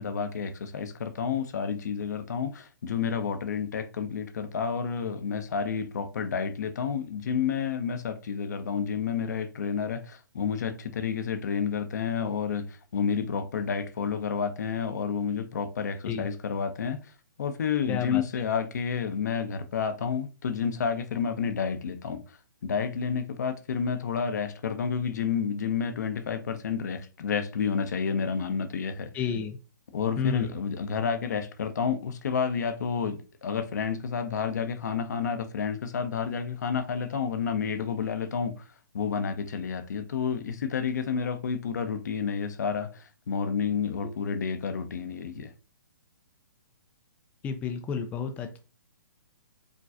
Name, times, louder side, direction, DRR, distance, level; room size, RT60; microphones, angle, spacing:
voice 1, 0.0-17.0 17.4-22.4 22.6-29.1 29.9-38.5 38.9-45.5, left 6 dB, 55° left, 0.7 m, -30 dB
voice 2, 17.9-18.2 29.1-29.6 30.2-30.5 47.4-48.6, left 6 dB, 15° left, 0.4 m, -31 dB
5.0 x 3.1 x 2.5 m
figure-of-eight pair, 125°, 11 cm